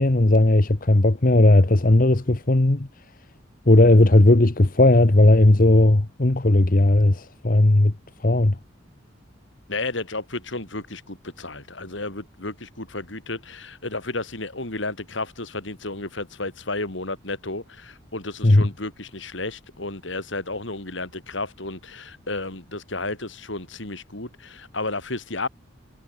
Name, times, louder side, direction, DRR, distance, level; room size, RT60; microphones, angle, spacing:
voice 1, 0.0-2.9 3.7-7.9 8.2-8.6 18.4-18.6, left 2 dB, 45° left, 1.1 m, -16 dB
voice 2, 9.7-25.5, left 2 dB, 70° left, 4.0 m, -32 dB
head